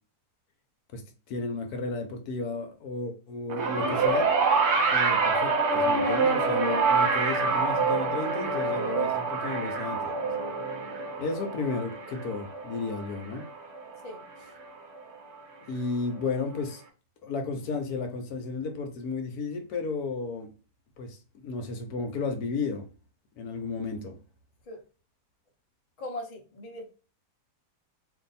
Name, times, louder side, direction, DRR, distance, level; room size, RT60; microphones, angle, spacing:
voice 1, 0.9-4.3 4.9-10.2 11.2-13.5 15.7-16.8 17.2-20.5 21.0-22.9 23.4-24.2, left 4 dB, 70° left, 1.1 m, -33 dB
sound 1, 3.5-13.9 15.0-15.1, right 4 dB, 60° right, 0.7 m, -26 dB
voice 2, 26.0-26.8, left 1 dB, 40° left, 0.5 m, -39 dB
2.6 x 2.6 x 4.0 m
omnidirectional pair, 1.8 m